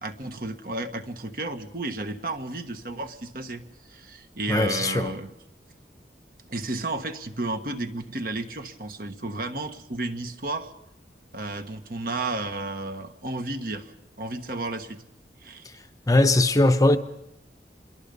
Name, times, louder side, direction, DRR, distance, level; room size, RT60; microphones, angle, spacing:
voice 1, 0.0-3.6 3.9-5.3 6.5-10.7 11.3-13.9 14.2-15.0 15.4-15.7, right 2 dB, 55° right, 1.5 m, -32 dB
voice 2, 4.5-5.1 15.6-15.7 16.1-17.0, left 2 dB, 20° left, 0.8 m, -20 dB
26.0 x 22.5 x 5.4 m
head